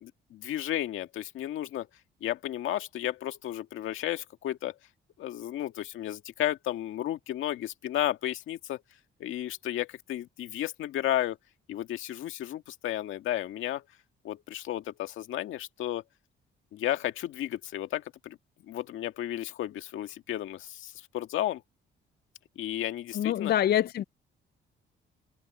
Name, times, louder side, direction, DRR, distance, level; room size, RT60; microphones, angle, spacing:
voice 1, 0.0-1.9 2.2-4.7 5.2-8.8 9.2-11.4 11.7-13.8 14.2-16.0 16.7-18.4 18.7-21.6 22.6-23.5, left 12 dB, 80° left, 1.8 m, -33 dB
voice 2, 23.2-24.0, left 11 dB, 55° left, 0.4 m, -25 dB
cardioid pair, 90°, 20 cm